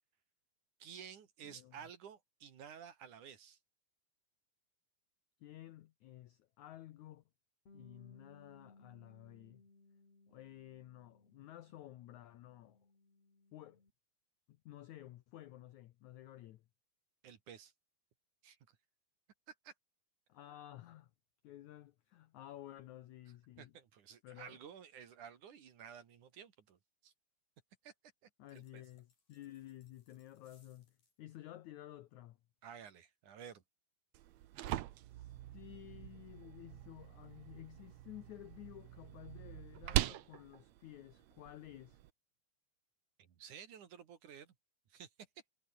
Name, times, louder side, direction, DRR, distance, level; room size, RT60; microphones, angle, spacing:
voice 1, 0.8-3.6 17.2-17.7 18.4-18.6 19.5-19.7 23.6-27.1 27.8-27.9 28.5-28.8 32.6-33.6 43.2-44.5 44.9-45.1, right 8 dB, 55° right, 3.2 m, -53 dB
voice 2, 1.4-1.8 5.4-7.2 7.7-9.6 10.3-12.8 13.5-13.8 14.5-16.6 20.3-21.1 21.4-23.7 24.2-24.6 28.4-32.4 35.1-42.0, left 14 dB, 80° left, 1.6 m, -53 dB
Bass guitar, 7.7-13.9, left 3 dB, 40° left, 8.4 m, -64 dB
sound 1, 28.5-31.2, left 5 dB, 55° left, 8.2 m, -75 dB
sound 2, 34.1-42.1, right 14 dB, 85° right, 1.5 m, -42 dB
omnidirectional pair, 4.6 m